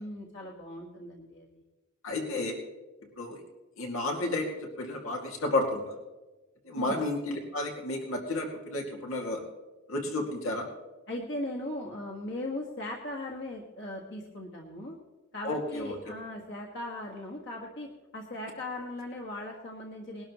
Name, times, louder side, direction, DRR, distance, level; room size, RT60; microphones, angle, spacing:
voice 1, 0.0-1.6 6.7-7.0 11.1-15.0 15.3-17.9 18.1-20.2, left 1 dB, 60° left, -1 dB, 1.7 m, -38 dB
voice 2, 2.0-2.6 3.2-3.4 3.8-6.0 6.6-9.4 9.9-10.7 15.4-16.1, left 2 dB, 90° left, 0 dB, 2.4 m, -32 dB
21.0 x 12.0 x 3.1 m, 1.2 s
head